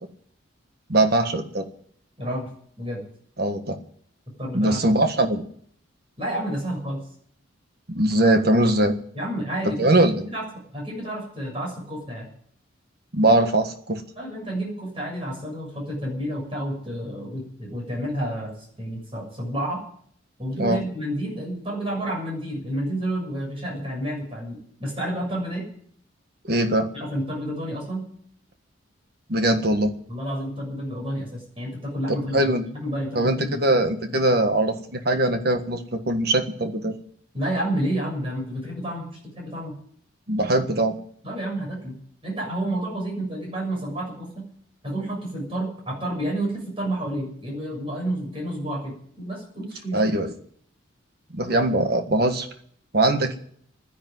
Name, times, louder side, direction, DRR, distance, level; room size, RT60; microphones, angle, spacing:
voice 1, 0.9-1.7 3.4-3.8 4.5-5.4 7.9-8.9 9.8-10.3 13.1-14.0 20.6-20.8 26.5-26.9 29.3-29.9 32.3-32.6 33.1-37.0 40.3-41.0 49.9-50.3 51.3-52.5 52.9-53.4, right 1 dB, 50° right, 7 dB, 1.6 m, -21 dB
voice 2, 2.2-2.5 2.8-3.0 4.4-4.8 6.2-7.0 9.1-9.9 10.3-12.3 14.1-18.5 18.8-19.8 20.4-25.6 26.9-28.1 30.1-33.6 34.1-34.2 37.3-39.8 41.2-41.9 42.2-44.5 44.8-50.0, right 1 dB, 25° right, -1 dB, 6.9 m, -30 dB
12.0 x 10.5 x 9.5 m, 0.63 s
head